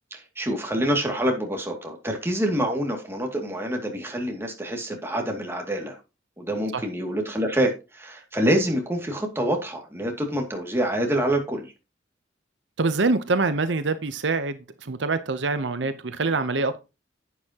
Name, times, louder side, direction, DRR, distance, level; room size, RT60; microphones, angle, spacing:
voice 1, 0.1-6.0 6.4-11.7, right 1 dB, 15° right, 2.4 m, -26 dB
voice 2, 12.8-16.8, right 3 dB, 75° right, 0.8 m, -25 dB
11.0 x 8.5 x 2.9 m
head